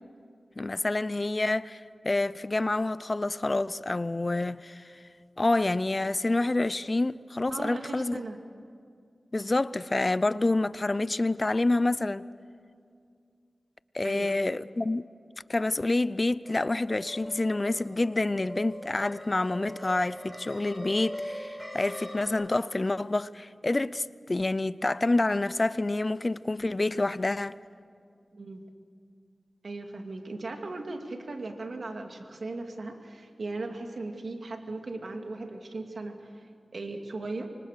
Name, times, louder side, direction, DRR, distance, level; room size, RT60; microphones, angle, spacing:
voice 1, 0.6-4.8 5.4-8.2 9.3-12.2 13.9-15.1 15.5-27.6, left 2 dB, 40° left, 0.5 m, -28 dB
voice 2, 7.5-8.4 14.0-14.4 28.3-28.6 29.6-37.5, right 2 dB, 70° right, 2.4 m, -38 dB
sound 1, 16.4-22.3, equal, 10° right, 5.4 m, -41 dB
25.0 x 25.0 x 6.7 m
cardioid pair, 50°, 0 cm